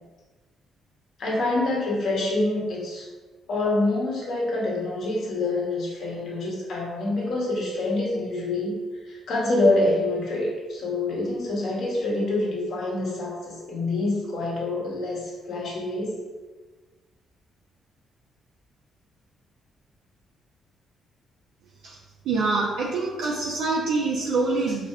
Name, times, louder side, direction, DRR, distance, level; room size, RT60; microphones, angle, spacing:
voice 1, 1.2-3.1 3.5-8.8 9.1-16.2, left 2 dB, 65° left, -3 dB, 1.0 m, -26 dB
voice 2, 22.2-24.9, right 3 dB, 80° right, -3 dB, 0.4 m, -25 dB
4.2 x 2.4 x 2.3 m, 1.3 s
cardioid pair, 90°, 0 cm